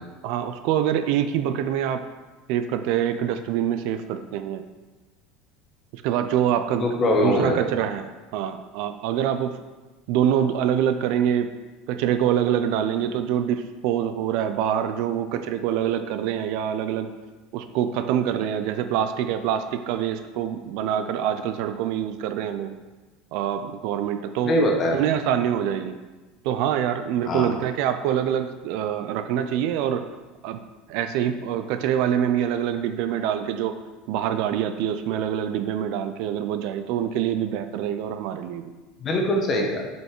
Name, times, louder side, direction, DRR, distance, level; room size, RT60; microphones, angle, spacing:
voice 1, 0.2-2.1 2.5-4.6 5.9-6.9 7.2-9.6 10.1-11.5 11.9-17.1 17.5-22.7 23.3-24.6 24.9-26.0 26.4-30.1 30.4-30.6 30.9-33.7 34.1-38.6, right 9 dB, 55° right, 9 dB, 0.5 m, -25 dB
voice 2, 6.8-7.5 24.4-25.0 27.2-27.5 39.0-39.8, left 1 dB, 25° left, 1 dB, 1.1 m, -22 dB
7.7 x 5.6 x 4.5 m, 1.2 s
cardioid pair, 175°, 0 cm